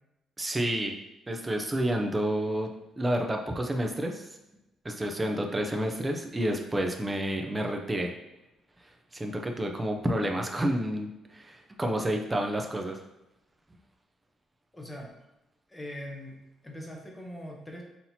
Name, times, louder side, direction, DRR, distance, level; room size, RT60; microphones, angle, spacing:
voice 1, 0.4-0.9 1.3-2.7 3.0-4.4 4.8-8.1 8.8-13.0, right 1 dB, 15° right, 3 dB, 0.5 m, -30 dB
voice 2, 14.7-15.1 15.7-17.8, equal, 10° left, 0 dB, 0.7 m, -41 dB
5.6 x 2.9 x 2.7 m, 0.94 s
cardioid pair, 145°, 0 cm